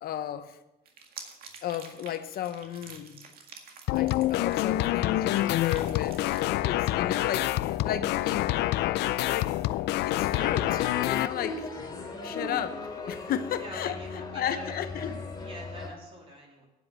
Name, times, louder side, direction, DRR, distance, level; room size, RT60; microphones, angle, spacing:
voice 1, 0.0-0.6 1.6-3.2 3.9-8.5 9.3-9.6 10.0-11.7 12.2-13.9 14.3-15.1, left 10 dB, 60° left, 11 dB, 1.0 m, -34 dB
sound 1, 0.9-5.0 5.3-6.4, right 6 dB, 60° right, 1.9 m, -48 dB
sound 2, 3.9-11.3, left 15 dB, 80° left, 0.5 m, -27 dB
sound 3, 10.3-15.9, left 3 dB, 25° left, 3.0 m, -38 dB
voice 2, 13.6-16.7, equal, 35° right, -2 dB, 3.3 m, -46 dB
9.5 x 7.8 x 8.0 m, 0.95 s
cardioid pair, 110°, 17 cm